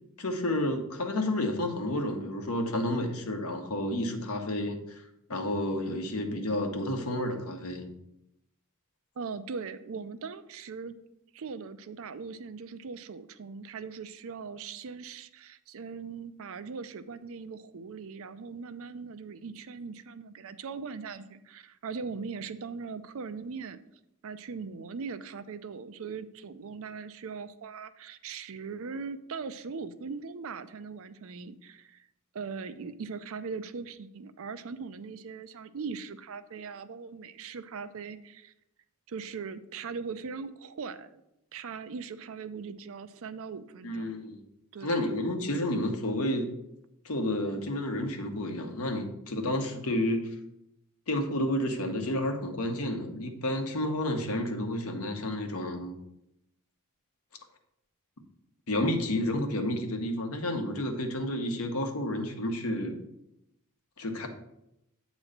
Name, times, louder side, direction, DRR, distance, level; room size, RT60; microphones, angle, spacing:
voice 1, 0.2-5.0 5.3-7.9 43.8-44.4 44.8-46.5 47.0-50.3 51.1-56.0 58.7-63.0 64.0-64.3, left 1 dB, 75° left, 4 dB, 1.0 m, -30 dB
voice 2, 9.2-10.9 11.3-23.8 24.2-32.1 32.3-38.5 39.1-41.2 41.5-44.1 44.7-45.0, right 5 dB, 65° right, 12 dB, 0.5 m, -40 dB
8.7 x 3.1 x 6.5 m, 0.83 s
head